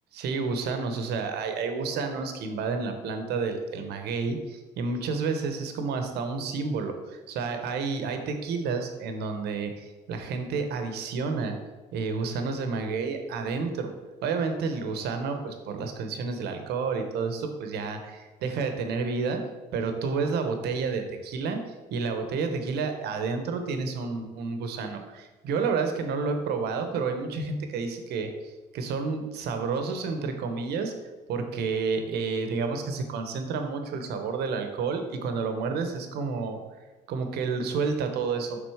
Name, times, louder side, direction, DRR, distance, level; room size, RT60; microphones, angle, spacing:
voice 1, 0.2-11.5 11.9-13.9 14.2-19.4 19.7-21.6 21.9-30.9 31.3-36.6 37.1-38.6, right 4 dB, 75° right, 6 dB, 0.9 m, -30 dB
6.3 x 3.9 x 4.8 m, 1.2 s
cardioid pair, 110°, 17 cm